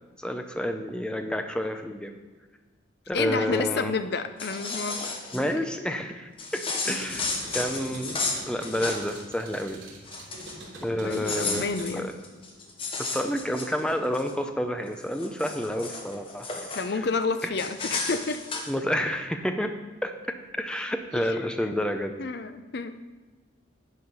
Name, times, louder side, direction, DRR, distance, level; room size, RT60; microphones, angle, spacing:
voice 1, 0.2-2.1 3.1-3.9 5.3-7.3 7.5-8.2 8.5-9.8 10.8-11.7 11.9-12.1 13.1-16.5 16.9-17.1 18.7-19.7 20.0-20.1 20.6-22.1, equal, 5° left, 6 dB, 0.5 m, -29 dB
voice 2, 3.1-5.2 5.8-5.9 6.8-7.2 10.9-12.1 16.7-18.4 21.1-21.4 22.2-23.0, left 4 dB, 55° left, 10 dB, 0.5 m, -30 dB
sound 1, 4.2-5.4 6.4-9.2 9.5-9.7 10.0-10.6 11.0-14.3 14.8-16.9 17.6-18.7, left 3 dB, 25° left, 1.0 m, -33 dB
sound 2, 6.9-13.6 13.9-14.8, right 1 dB, 75° right, 3.2 m, -45 dB
10.5 x 5.0 x 5.4 m, 1.3 s
head